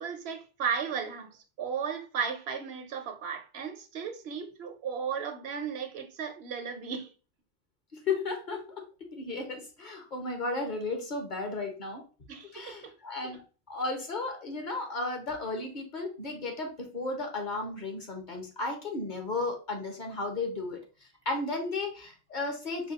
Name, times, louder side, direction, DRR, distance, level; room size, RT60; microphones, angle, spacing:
voice 1, 0.0-7.1 12.3-12.9, right 6 dB, 80° right, 1.0 m, -35 dB
voice 2, 7.9-8.6 9.1-12.0 12.5-13.4 13.7-20.8 21.2-22.9, left 3 dB, 50° left, 1.2 m, -34 dB
4.8 x 2.3 x 4.0 m
omnidirectional pair, 1.0 m